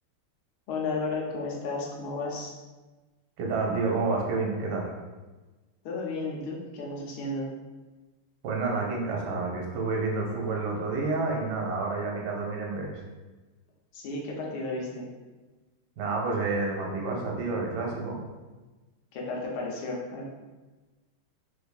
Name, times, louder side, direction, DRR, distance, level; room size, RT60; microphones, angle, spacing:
voice 1, 0.7-2.5 5.8-7.5 13.9-15.1 19.1-20.3, left 3 dB, 85° left, -2 dB, 1.6 m, -33 dB
voice 2, 3.4-4.9 8.4-13.0 16.0-18.2, right 3 dB, 70° right, -1 dB, 1.1 m, -29 dB
3.5 x 3.3 x 2.3 m, 1.2 s
omnidirectional pair, 2.3 m